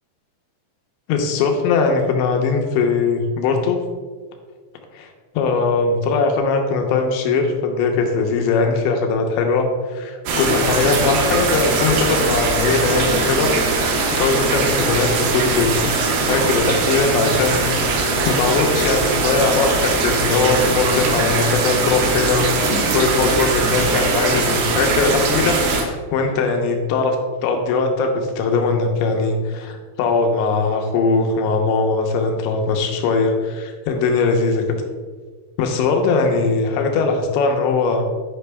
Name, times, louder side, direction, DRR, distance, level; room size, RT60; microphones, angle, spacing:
voice 1, 1.1-3.8 4.9-5.1 5.3-13.5 14.2-15.9 16.3-17.7 18.3-27.2 27.4-34.6 35.6-38.0, left 4 dB, 85° left, 3 dB, 3.1 m, -20 dB
sound 1, 10.3-25.8, right 3 dB, 70° right, 2.5 m, -20 dB
9.5 x 5.1 x 3.4 m, 1.5 s
omnidirectional pair, 5.1 m